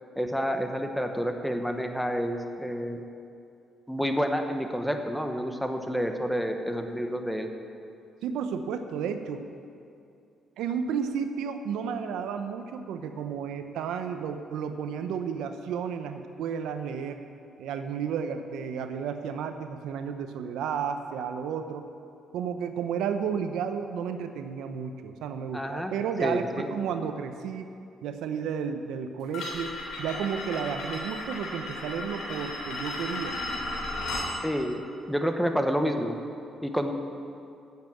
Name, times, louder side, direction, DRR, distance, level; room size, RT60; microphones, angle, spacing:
voice 1, 0.2-3.0 3.9-7.5 25.5-25.9 26.2-26.7 34.4-34.8 35.1-36.2 36.6-36.9, equal, ahead, 5 dB, 1.0 m, -29 dB
voice 2, 8.2-9.4 10.6-17.2 17.6-21.8 22.3-27.7 28.0-29.7 30.0-33.4, right 7 dB, 90° right, 8 dB, 0.6 m, -32 dB
sound 1, 29.3-34.3, left 1 dB, 80° left, 2.9 m, -35 dB
9.3 x 7.3 x 7.6 m, 2.5 s
cardioid pair, 90°, 0 cm